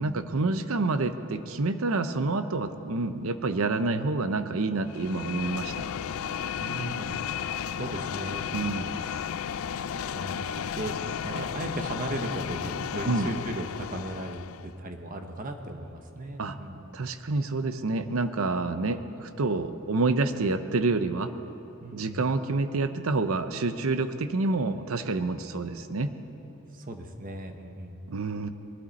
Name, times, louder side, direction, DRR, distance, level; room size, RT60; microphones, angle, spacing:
voice 1, 0.0-5.9 8.5-8.9 13.1-13.3 16.4-16.6 16.9-21.3 21.9-26.2 28.1-28.5, right 3 dB, 70° right, 10 dB, 0.7 m, -28 dB
sound 1, 4.9-14.7, left 8 dB, 75° left, 0.4 m, -33 dB
voice 2, 6.6-7.2 7.7-8.9 10.1-10.9 11.2-17.0 21.8-22.3 26.7-28.0, right 1 dB, 40° right, 5 dB, 1.0 m, -37 dB
20.5 x 12.5 x 4.1 m, 3.0 s
head